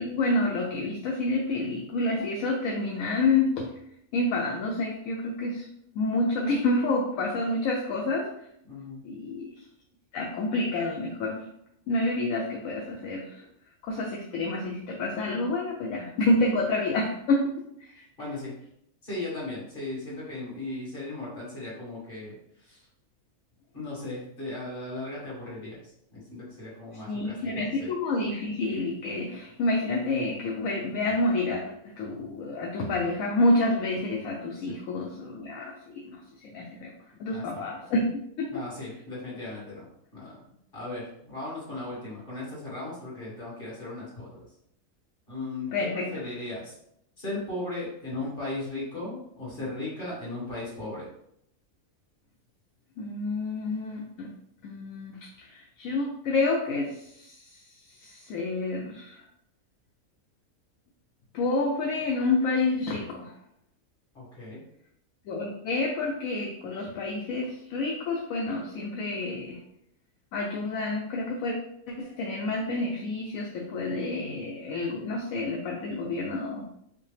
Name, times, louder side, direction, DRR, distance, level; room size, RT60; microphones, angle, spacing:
voice 1, 0.0-3.7 4.1-5.7 5.9-8.3 9.0-9.6 10.1-11.5 11.9-13.5 13.8-17.5 17.8-18.1 27.0-36.9 37.2-38.5 45.7-46.1 53.0-54.3 54.6-59.2 61.3-63.4 65.3-69.6 70.3-71.5 71.9-76.7, left 2 dB, 75° left, -1 dB, 1.0 m, -28 dB
voice 2, 8.7-9.0 18.2-18.5 19.0-22.8 23.7-27.9 34.6-34.8 37.3-37.6 38.5-40.4 40.7-44.5 45.3-46.7 47.2-51.1 64.1-64.6, left 2 dB, 40° left, -6 dB, 1.8 m, -37 dB
5.3 x 2.1 x 3.3 m, 0.74 s
omnidirectional pair, 1.5 m